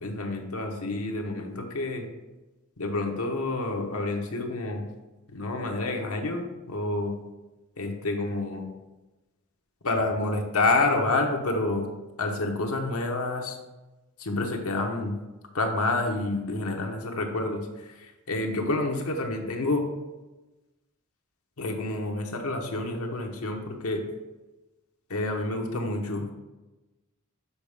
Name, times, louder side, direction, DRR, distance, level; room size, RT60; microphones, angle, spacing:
voice 1, 0.0-2.0 2.8-4.8 5.3-7.1 7.8-8.6 9.8-11.9 12.2-13.6 14.2-15.2 15.5-19.8 21.6-24.0 25.1-26.3, left 2 dB, 80° left, 3 dB, 1.0 m, -28 dB
6.9 x 4.7 x 3.4 m, 1.1 s
head